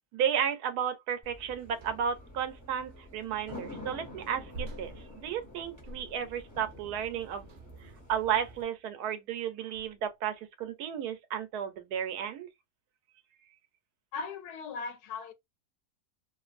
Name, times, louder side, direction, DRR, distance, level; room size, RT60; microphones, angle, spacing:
voice 1, 0.1-7.5 8.1-12.5, right 8 dB, 85° right, 1.2 m, -33 dB
sound 1, 1.2-8.6, left 1 dB, 15° right, 0.8 m, -48 dB
sound 2, 1.8-2.3 4.5-6.5 7.4-7.9 8.7-8.9 9.7-10.2, right 1 dB, 60° right, 0.7 m, -46 dB
voice 2, 14.1-15.3, left 4 dB, 85° left, 1.1 m, -38 dB
2.5 x 2.5 x 2.4 m
omnidirectional pair, 1.6 m